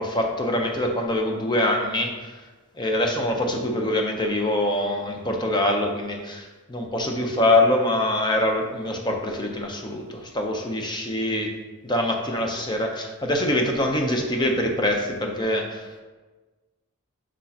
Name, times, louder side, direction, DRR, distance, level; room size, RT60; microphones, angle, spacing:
voice 1, 0.0-2.3 2.8-11.5 11.8-16.0, left 1 dB, 20° left, 2 dB, 0.8 m, -24 dB
6.3 x 6.0 x 2.9 m, 1.3 s
head